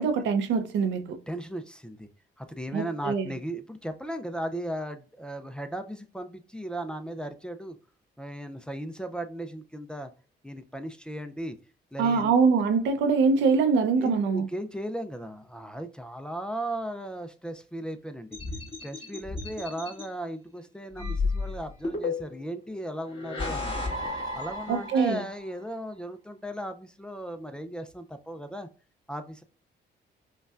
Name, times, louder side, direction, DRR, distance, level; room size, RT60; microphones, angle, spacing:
voice 1, 0.0-1.2 2.7-3.3 12.0-14.5 24.7-25.2, right 5 dB, 85° right, 0.6 m, -23 dB
voice 2, 1.3-2.1 2.4-7.8 8.2-10.1 10.4-11.6 11.9-12.3 14.0-18.3 18.8-23.8 24.4-28.7 29.1-29.4, right 1 dB, 5° left, 0.4 m, -36 dB
sound 1, 18.3-20.0 21.0-22.5 23.1-25.3, left 3 dB, 30° left, 1.9 m, -32 dB
5.3 x 2.2 x 2.4 m
cardioid pair, 115°, 19 cm